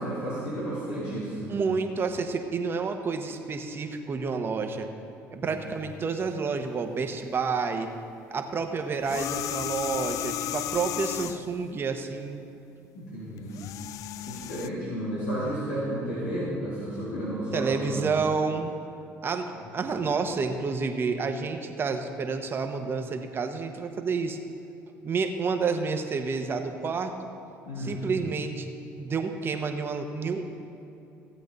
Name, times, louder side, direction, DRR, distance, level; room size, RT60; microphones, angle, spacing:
voice 1, 0.0-1.5 5.4-5.6 12.9-13.6 14.3-18.1 27.7-28.0, right 1 dB, 90° left, -9 dB, 3.1 m, -32 dB
voice 2, 1.5-4.9 5.3-7.9 8.3-12.4 17.5-18.7 19.2-24.4 25.0-27.1 27.8-28.7 29.0-30.6, right 4 dB, 40° right, 5 dB, 1.1 m, -29 dB
sound 1, 9.0-11.5 13.4-14.7, left 12 dB, 65° left, 0.3 m, -34 dB
16.0 x 8.2 x 4.0 m, 2.7 s
supercardioid pair, 85°, 6 cm